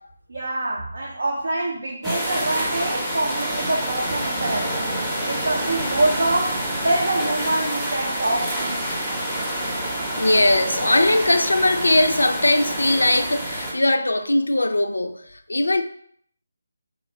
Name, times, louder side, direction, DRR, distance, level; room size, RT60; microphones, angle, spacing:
voice 1, 0.3-4.9 5.3-8.9, right 2 dB, 60° right, 0.5 m, -25 dB
sound 1, 2.0-13.7, right 1 dB, 5° right, 0.6 m, -27 dB
voice 2, 9.7-15.8, left 1 dB, 75° left, 0.4 m, -20 dB
2.9 x 2.4 x 4.0 m
figure-of-eight pair, 150°, 0 cm